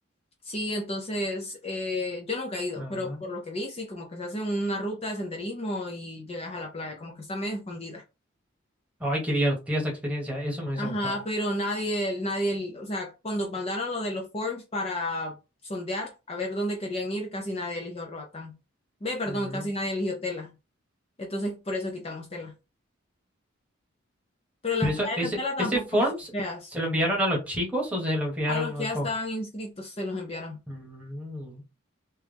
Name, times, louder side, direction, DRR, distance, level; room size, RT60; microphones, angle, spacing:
voice 1, 0.4-8.0 10.8-15.4 15.6-18.6 19.0-20.5 21.2-22.5 24.6-26.1 26.3-26.7 28.5-30.6, left 1 dB, 30° left, 0.6 m, -31 dB
voice 2, 2.8-3.2 9.0-11.1 19.3-19.7 24.8-26.3 26.7-29.1 30.7-31.6, equal, 5° right, 1.4 m, -28 dB
3.4 x 3.0 x 3.4 m
head